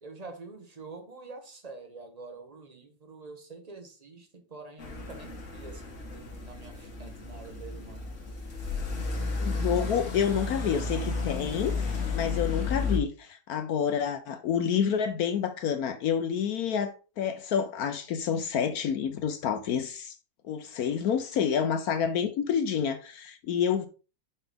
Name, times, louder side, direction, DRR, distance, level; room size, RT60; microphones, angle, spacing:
voice 1, 0.0-8.0 9.7-9.8, right 3 dB, 30° right, 0.9 m, -46 dB
sound 1, 4.8-13.0, left 4 dB, 45° left, 1.6 m, -33 dB
voice 2, 9.4-20.1 20.5-23.9, left 7 dB, 70° left, 0.9 m, -28 dB
5.6 x 5.5 x 3.4 m
omnidirectional pair, 2.0 m